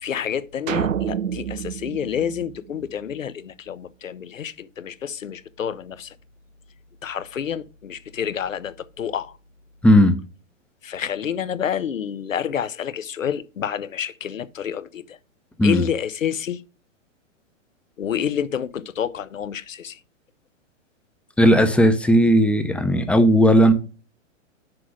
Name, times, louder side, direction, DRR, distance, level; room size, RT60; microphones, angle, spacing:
voice 1, 0.0-6.1 7.0-9.3 10.8-15.2 15.6-16.6 18.0-20.0, left 8 dB, 90° left, 0.8 m, -28 dB
sound 1, 0.7-3.1, right 9 dB, 85° right, 0.7 m, -28 dB
voice 2, 21.4-23.7, equal, 5° left, 0.5 m, -15 dB
6.2 x 4.8 x 6.1 m
hypercardioid pair, 120°, 38 cm